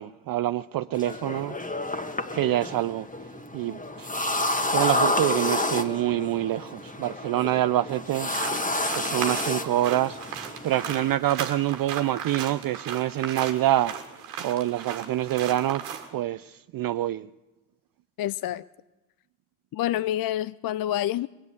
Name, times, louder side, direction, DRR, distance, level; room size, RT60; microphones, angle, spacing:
voice 1, 0.0-1.6 2.3-3.1 3.5-4.1 4.7-8.3 8.6-14.0 14.4-15.8 16.1-17.3, right 14 dB, 45° right, 0.5 m, -26 dB
sound 1, 0.9-11.1, left 2 dB, 15° left, 1.6 m, -30 dB
sound 2, 8.1-16.1, right 8 dB, 90° right, 1.6 m, -36 dB
voice 2, 18.2-18.6 19.7-21.3, left 13 dB, 50° left, 0.5 m, -27 dB
20.0 x 8.9 x 8.1 m
hypercardioid pair, 45°, 49 cm